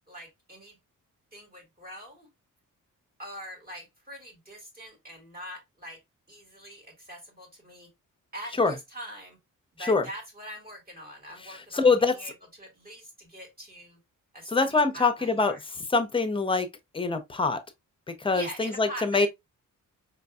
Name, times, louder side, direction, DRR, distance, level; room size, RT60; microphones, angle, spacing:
voice 1, 0.1-0.8 1.3-2.3 3.2-6.0 6.3-7.9 8.3-9.4 9.7-12.3 12.6-14.0 14.3-15.6 18.3-19.3, equal, 30° right, 1.4 m, -43 dB
voice 2, 11.4-12.2 14.5-16.7 16.9-17.6 18.1-19.3, left 4 dB, 15° left, 0.5 m, -24 dB
4.7 x 2.5 x 2.2 m
wide cardioid pair, 155°, 32 cm